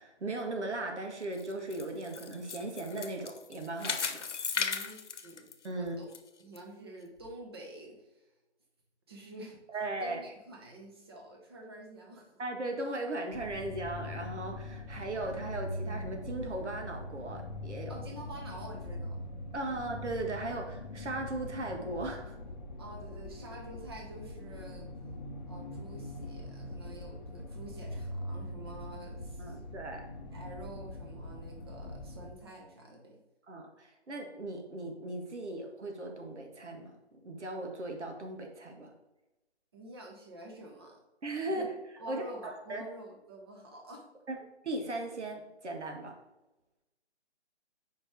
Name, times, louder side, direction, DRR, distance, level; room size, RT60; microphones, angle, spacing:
voice 1, 0.0-4.2 5.6-6.0 9.7-10.2 12.4-17.9 19.5-22.4 29.4-30.1 33.5-38.9 41.2-41.7 42.1-42.9 44.3-44.4 44.6-46.2, right 2 dB, 80° right, 3 dB, 1.7 m, -37 dB
sound 1, 1.2-6.2 6.6-6.7 7.2-7.3, left 6 dB, 80° left, 0.9 m, -36 dB
voice 2, 4.5-5.5 5.8-6.1 6.4-8.3 9.1-9.6 10.0-12.4 17.9-19.2 19.7-19.8 22.8-24.9 25.5-29.6 30.3-33.2 39.7-41.0 41.5-41.6 42.0-44.1, right 1 dB, 20° right, 0 dB, 0.9 m, -48 dB
sound 2, 13.3-32.3, left 1 dB, 40° left, 0.8 m, -42 dB
5.1 x 5.0 x 4.6 m, 1.0 s
hypercardioid pair, 170°, 35 cm